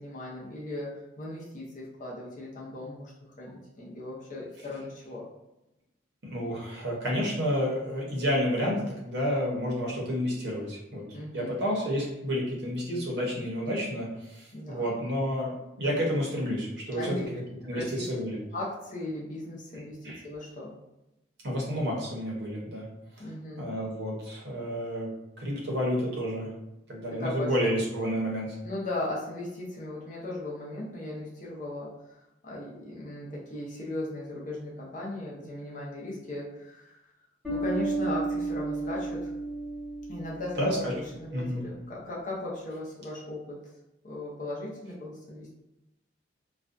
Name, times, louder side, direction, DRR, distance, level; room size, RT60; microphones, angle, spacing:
voice 1, 0.0-5.3 11.1-11.6 14.5-14.9 17.0-17.3 17.7-18.2 18.5-20.7 23.2-23.7 25.6-25.8 27.1-27.6 28.6-37.0 37.5-39.3 40.1-43.6 44.0-45.5, left 1 dB, 40° left, -5 dB, 0.6 m, -37 dB
voice 2, 6.2-11.0 11.3-17.1 17.7-18.4 20.0-20.2 21.4-22.8 23.6-26.5 26.9-28.6 40.6-40.9 41.3-41.6, equal, 60° right, -4 dB, 0.8 m, -30 dB
Bass guitar, 37.4-40.9, right 3 dB, 5° left, 1.1 m, -32 dB
2.4 x 2.2 x 2.5 m, 0.92 s
head